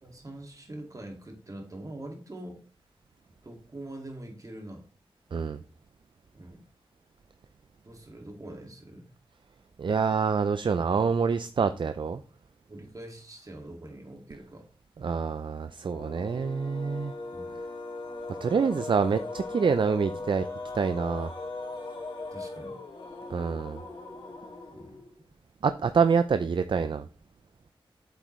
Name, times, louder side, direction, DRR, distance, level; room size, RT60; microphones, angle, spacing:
voice 1, 0.0-2.6 3.4-4.8 6.3-6.6 7.8-9.1 12.7-14.7 17.3-17.6 22.3-22.8 24.7-25.0, right 1 dB, 35° right, 3 dB, 2.2 m, -44 dB
voice 2, 9.8-12.2 15.0-17.1 18.4-20.5 20.7-21.3 23.3-23.8 25.6-27.0, right 5 dB, 60° right, 11 dB, 0.5 m, -26 dB
sound 1, 15.8-25.2, left 3 dB, 60° left, 2.5 m, -39 dB
7.9 x 7.9 x 3.2 m, 0.40 s
wide cardioid pair, 70°, 10 cm